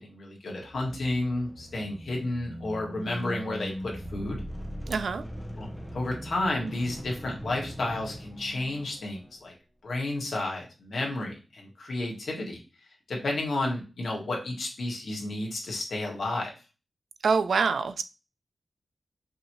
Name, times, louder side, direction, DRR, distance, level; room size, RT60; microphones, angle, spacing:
voice 1, 0.0-4.4 5.6-9.5 9.8-12.6 13.1-16.5, left 2 dB, 80° left, 1.5 m, -32 dB
sound 1, 0.6-9.4, equal, 5° left, 0.7 m, -40 dB
voice 2, 4.9-5.2 17.2-18.0, right 5 dB, 85° right, 0.3 m, -25 dB
5.3 x 2.7 x 3.0 m
wide cardioid pair, 75°, 0 cm